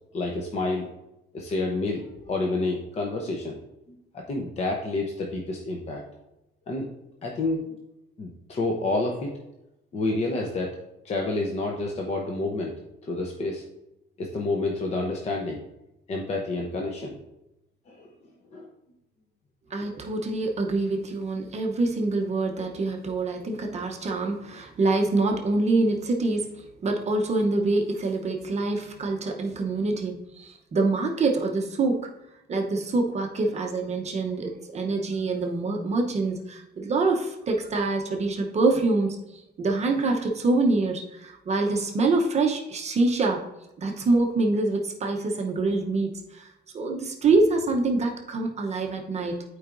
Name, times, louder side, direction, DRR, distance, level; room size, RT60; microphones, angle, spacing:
voice 1, 0.1-0.9 1.3-3.6 3.9-6.0 6.7-6.9 7.2-7.7 8.2-9.4 9.9-10.8 11.0-12.7 13.0-13.6 14.2-15.6 16.1-17.2 17.9-18.1 18.5-18.7 19.8-20.0, left 2 dB, 35° left, 0 dB, 0.7 m, -29 dB
voice 2, 19.7-32.1 32.5-43.4 43.8-46.5 46.7-49.4, right 3 dB, 35° right, 1 dB, 0.8 m, -25 dB
12.0 x 4.7 x 2.5 m, 0.90 s
cardioid pair, 170°, 19 cm